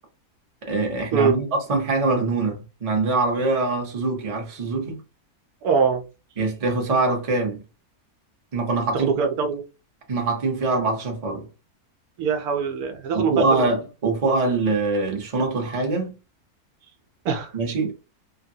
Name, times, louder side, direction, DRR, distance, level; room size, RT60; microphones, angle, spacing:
voice 1, 0.6-5.0 6.4-7.6 8.5-9.1 10.1-11.5 13.1-16.1 17.5-17.9, right 3 dB, 30° right, 0.7 m, -23 dB
voice 2, 5.6-6.0 8.9-9.6 12.2-13.7 17.2-17.5, right 5 dB, 80° right, 1.1 m, -23 dB
3.2 x 2.2 x 2.7 m
omnidirectional pair, 1.6 m